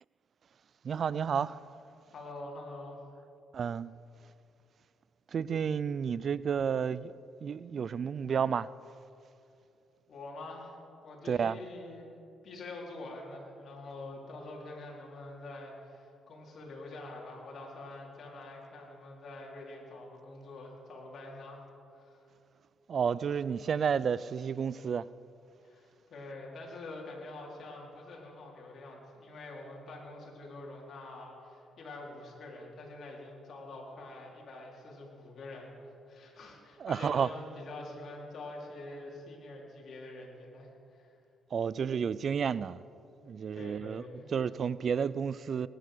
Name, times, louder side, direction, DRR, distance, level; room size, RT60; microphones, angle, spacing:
voice 1, 0.8-1.6 3.5-3.9 5.3-7.1 7.4-8.7 11.3-11.6 22.9-25.1 36.8-37.3 41.5-42.8 43.2-44.0 44.3-45.7, right 7 dB, 50° right, 0.4 m, -31 dB
voice 2, 2.1-3.0 10.1-10.8 11.0-12.1 12.4-21.6 21.9-22.3 25.6-41.1 43.5-44.3, left 2 dB, 55° left, 4.1 m, -46 dB
19.0 x 10.5 x 6.8 m
cardioid pair, 90°, 0 cm